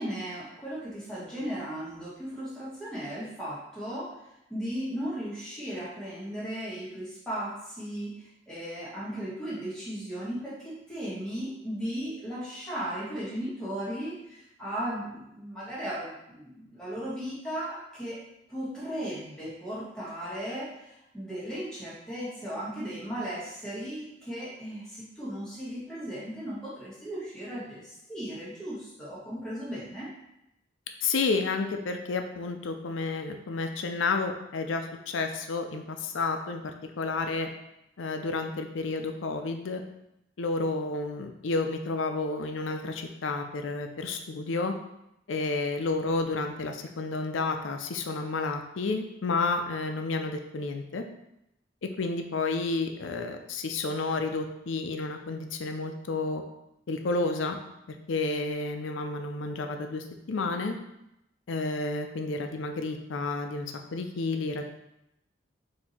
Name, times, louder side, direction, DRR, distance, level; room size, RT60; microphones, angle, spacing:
voice 1, 0.0-4.1 4.5-18.2 18.5-30.1, equal, 5° left, -9 dB, 1.4 m, -36 dB
voice 2, 31.0-37.5 38.0-39.8 40.4-44.7 45.3-51.0 51.8-56.4 56.9-57.6 57.9-60.7 61.5-64.6, left 3 dB, 85° left, 5 dB, 0.5 m, -31 dB
4.4 x 2.8 x 4.2 m, 0.84 s
head